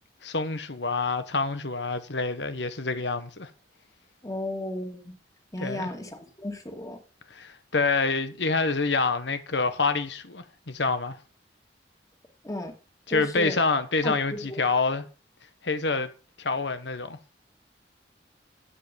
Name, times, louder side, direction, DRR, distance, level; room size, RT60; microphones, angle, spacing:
voice 1, 0.2-3.5 5.6-5.9 7.3-11.2 13.1-15.0 15.6-16.1 16.4-17.2, left 3 dB, 75° left, 1.3 m, -27 dB
voice 2, 4.2-5.2 5.5-7.0 12.4-12.7 13.1-13.6 14.0-14.6, left 1 dB, 20° left, 2.4 m, -34 dB
13.0 x 7.8 x 5.2 m
head